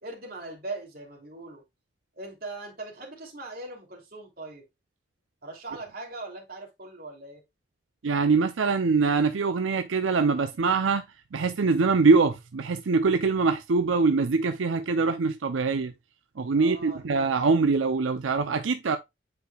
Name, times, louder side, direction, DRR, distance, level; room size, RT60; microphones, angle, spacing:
voice 1, 0.0-1.6 2.2-4.7 5.4-7.4 16.5-17.0, right 2 dB, 50° right, 2.8 m, -40 dB
voice 2, 8.0-11.0 11.3-15.9 16.4-19.0, right 4 dB, 90° right, 0.6 m, -23 dB
9.4 x 4.8 x 2.3 m
head